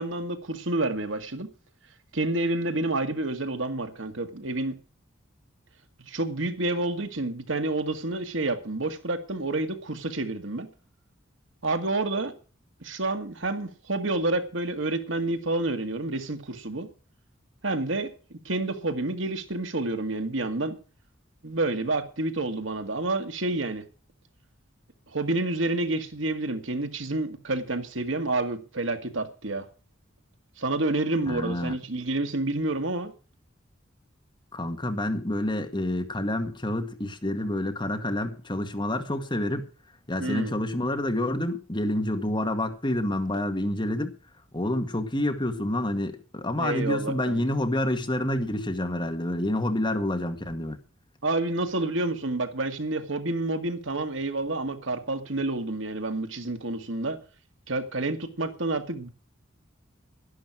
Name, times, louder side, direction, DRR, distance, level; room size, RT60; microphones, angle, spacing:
voice 1, 0.0-1.5 2.1-4.8 6.1-10.7 11.6-12.3 12.8-16.9 17.6-18.1 18.5-20.8 21.4-23.8 25.1-29.7 30.6-33.1 40.2-40.6 46.6-47.4 51.2-57.2 57.7-59.1, right 2 dB, 70° right, 2.0 m, -29 dB
voice 2, 31.3-31.8 34.5-39.7 40.1-44.2 44.5-50.8, left 1 dB, 25° left, 2.0 m, -28 dB
12.0 x 11.5 x 6.2 m
head